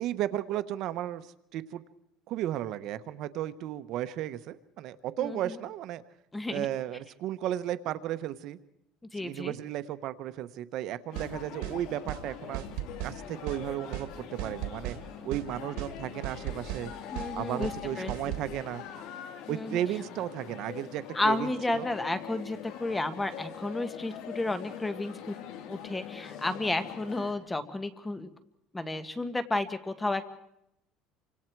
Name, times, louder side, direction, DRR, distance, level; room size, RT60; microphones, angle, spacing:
voice 1, 0.0-1.8 2.3-6.0 6.5-8.6 9.2-12.6 13.0-15.0 15.2-16.9 17.3-18.8 19.5-21.9, right 12 dB, 60° right, 13 dB, 1.0 m, -34 dB
voice 2, 5.2-5.6 6.3-6.7 9.1-9.5 17.1-17.7 18.0-18.1 19.5-19.8 21.1-25.3 25.7-28.3 28.7-30.3, left 2 dB, 10° left, 10 dB, 1.6 m, -32 dB
sound 1, 11.1-27.3, left 9 dB, 75° left, 3.9 m, -43 dB
sound 2, 11.1-11.3 11.6-11.8 12.1-12.2 12.5-13.2 13.5-13.6 13.9-14.1 14.4-15.0 15.3-15.5 15.8-15.9 16.2-16.8 17.1-17.3 17.6-17.8 18.1-18.5, right 14 dB, 85° right, 2.1 m, -36 dB
28.5 x 25.5 x 4.7 m, 0.79 s
cardioid pair, 135°, 0 cm